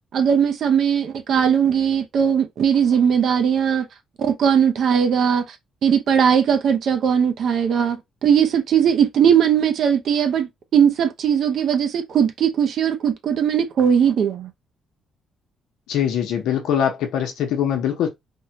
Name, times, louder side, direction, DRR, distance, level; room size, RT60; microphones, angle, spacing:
voice 1, 0.1-3.9 4.2-5.6 5.8-14.5, right 8 dB, 65° right, 0.6 m, -19 dB
voice 2, 15.9-18.1, left 9 dB, 85° left, 0.7 m, -22 dB
3.5 x 2.1 x 2.8 m
cardioid pair, 90°, 0 cm